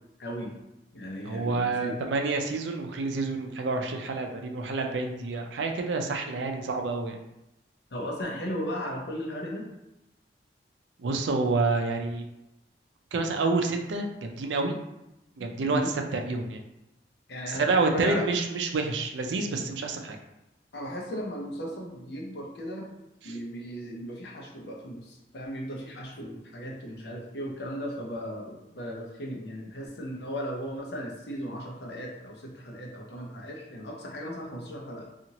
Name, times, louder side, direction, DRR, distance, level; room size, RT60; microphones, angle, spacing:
voice 1, 0.2-0.5 0.9-1.9 7.9-9.7 15.4-15.9 17.3-18.2 20.7-22.9 23.2-35.1, equal, 70° left, -1 dB, 0.6 m, -36 dB
voice 2, 1.2-7.2 11.0-12.2 13.1-14.7 15.4-16.6 17.5-20.2 23.2-23.4, right 3 dB, 90° right, 4 dB, 0.4 m, -28 dB
2.8 x 2.4 x 2.9 m, 0.90 s
head